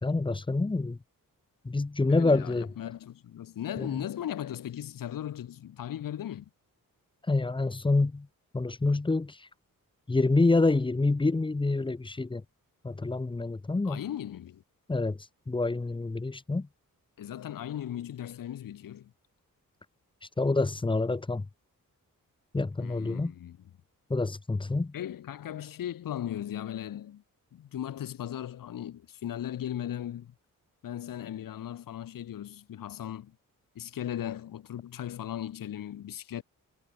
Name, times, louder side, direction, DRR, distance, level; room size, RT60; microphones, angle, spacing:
voice 1, 0.0-1.0 1.6-2.7 3.8-3.9 7.3-8.3 8.5-9.4 10.1-12.4 12.8-14.0 14.9-15.2 15.5-16.7 20.4-21.5 22.5-23.3 24.1-24.9, left 3 dB, 15° left, 0.7 m, -27 dB
voice 2, 2.1-6.5 13.8-14.6 17.2-19.1 22.8-23.6 24.9-27.2 27.5-30.3 30.8-33.4 33.7-36.4, left 11 dB, 70° left, 1.0 m, -37 dB
wide cardioid pair, 115°, 34 cm